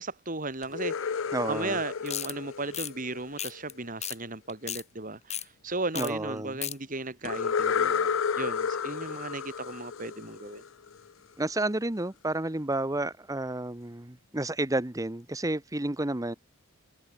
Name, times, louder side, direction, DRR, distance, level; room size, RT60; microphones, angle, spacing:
voice 1, 0.0-10.6, right 2 dB, 40° right, 3.4 m, -36 dB
Thunder Toy (Clean), 0.6-3.6 7.2-11.0, left 6 dB, 80° left, 0.6 m, -31 dB
voice 2, 1.3-1.8 6.0-6.5 11.4-16.4, right 2 dB, 15° right, 1.0 m, -31 dB
sound 1, 2.1-2.3 2.7-2.9 3.4-3.7 4.0-4.2 4.5-4.8 5.3-5.4 5.9-6.1 6.4-6.7, left 10 dB, 35° left, 3.7 m, -34 dB
head